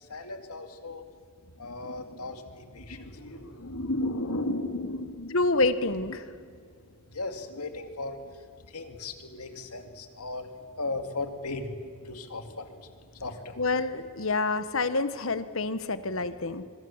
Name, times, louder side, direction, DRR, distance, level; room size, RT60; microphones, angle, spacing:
voice 1, 0.1-1.0 1.6-5.4 6.4-6.5 7.1-8.2 8.7-11.8 12.0-12.7 13.2-13.6, left 2 dB, 90° left, 6 dB, 2.4 m, -35 dB
voice 2, 5.3-6.2 13.6-16.6, left 3 dB, 60° left, 12 dB, 1.3 m, -27 dB
26.0 x 22.5 x 7.3 m, 2.1 s
head